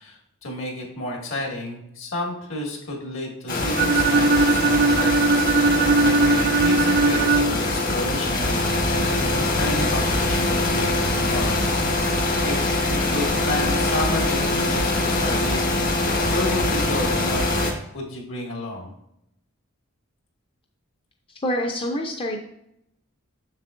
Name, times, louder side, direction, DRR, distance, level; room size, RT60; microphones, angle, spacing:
voice 1, 0.0-17.4 17.9-18.9, left 1 dB, 65° left, 0 dB, 2.0 m, -31 dB
sound 1, 3.5-17.7, left 2 dB, 40° left, 1.1 m, -23 dB
Bowed string instrument, 3.8-7.7, right 3 dB, 50° right, 0.4 m, -19 dB
voice 2, 21.4-22.4, equal, 25° left, 2 dB, 0.5 m, -26 dB
7.3 x 6.7 x 2.5 m, 0.78 s
head